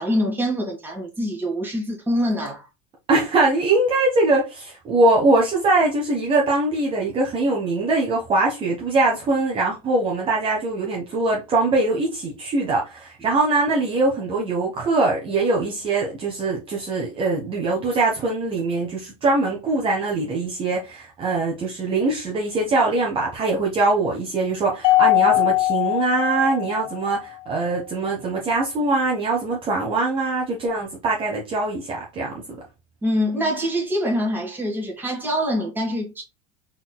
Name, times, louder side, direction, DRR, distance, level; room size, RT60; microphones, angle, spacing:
voice 1, 0.0-2.7 33.0-36.2, equal, 10° right, 1.8 m, -24 dB
voice 2, 3.1-32.4, right 2 dB, 30° right, 1.2 m, -22 dB
Mallet percussion, 24.8-27.3, left 18 dB, 60° left, 0.4 m, -20 dB
4.1 x 4.0 x 2.2 m
supercardioid pair, 135°, 18 cm